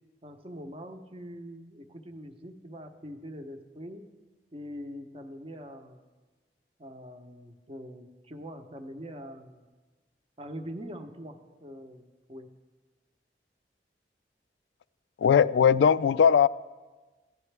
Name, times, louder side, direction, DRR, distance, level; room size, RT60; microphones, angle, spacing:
voice 1, 0.2-4.0 4.5-6.0 6.8-9.6 10.4-12.5, equal, 35° right, 0.8 m, -43 dB
voice 2, 15.2-16.5, left 7 dB, 90° left, 0.3 m, -19 dB
15.5 x 10.5 x 3.3 m
head